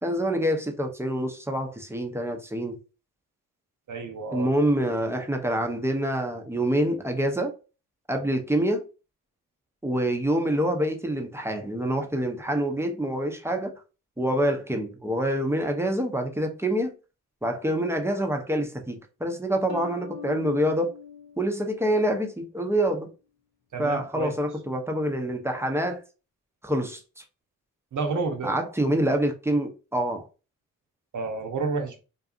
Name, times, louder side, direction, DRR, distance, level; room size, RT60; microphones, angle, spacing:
voice 1, 0.0-2.8 4.3-7.5 8.1-8.8 9.8-13.7 14.2-16.9 17.4-20.9 21.4-23.1 23.8-26.0 26.6-27.2 28.4-30.3, right 1 dB, 5° right, 0.7 m, -26 dB
voice 2, 3.9-4.5 23.7-24.4 27.9-28.5 31.1-32.0, right 4 dB, 55° right, 0.8 m, -30 dB
sound 1, 19.7-22.3, left 8 dB, 70° left, 0.6 m, -43 dB
2.6 x 2.4 x 2.4 m
supercardioid pair, 45°, 36 cm